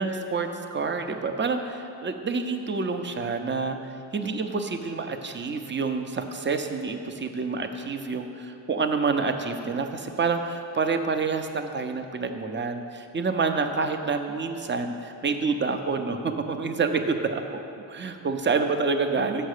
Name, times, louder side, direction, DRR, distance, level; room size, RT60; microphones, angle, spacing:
voice 1, 0.0-3.8 4.1-17.4 17.9-19.5, right 4 dB, 25° right, 6 dB, 0.6 m, -28 dB
6.5 x 5.9 x 6.6 m, 2.7 s
cardioid pair, 85°, 45 cm